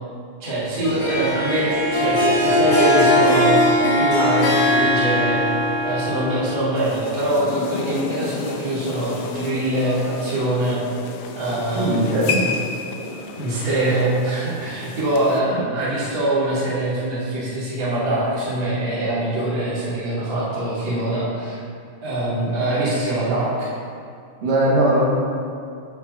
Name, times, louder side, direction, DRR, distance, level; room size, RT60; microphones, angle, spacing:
voice 1, 0.4-5.4 5.8-10.8 11.3-12.6 12.9-21.6 22.0-23.7, right 1 dB, 40° right, -10 dB, 2.8 m, -23 dB
Harp, 0.8-6.6, left 1 dB, 45° left, 1.6 m, -19 dB
sound 1, 6.8-15.4, left 5 dB, 80° left, 1.8 m, -32 dB
voice 2, 11.5-12.4 24.4-25.0, right 1 dB, 90° right, -5 dB, 3.1 m, -20 dB
14.5 x 5.9 x 2.6 m, 2.3 s
omnidirectional pair, 3.7 m